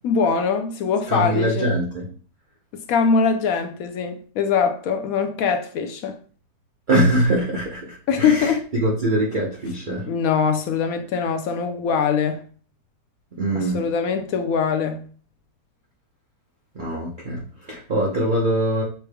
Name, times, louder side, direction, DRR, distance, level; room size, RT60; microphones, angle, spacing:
voice 1, 0.0-1.7 2.7-6.2 8.1-8.6 10.1-12.4 13.6-15.0, left 6 dB, 70° left, 0.9 m, -22 dB
voice 2, 1.1-2.1 6.9-10.1 13.4-13.9 16.7-18.8, right 1 dB, 40° right, 0.7 m, -23 dB
6.7 x 3.2 x 2.3 m
omnidirectional pair, 1.8 m